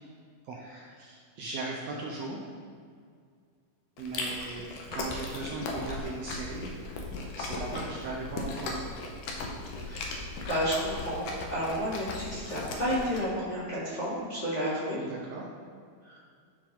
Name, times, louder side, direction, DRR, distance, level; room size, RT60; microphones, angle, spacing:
voice 1, 0.4-2.4 4.0-6.7 7.4-8.9 15.0-15.5, right 3 dB, 75° right, -2 dB, 1.6 m, -38 dB
Chewing mastication, 4.0-13.2, left 2 dB, 75° left, 2.3 m, -37 dB
voice 2, 9.9-10.2 10.5-15.0 16.0-16.2, equal, 35° left, -9 dB, 1.2 m, -31 dB
13.0 x 5.0 x 3.5 m, 2.1 s
omnidirectional pair, 3.7 m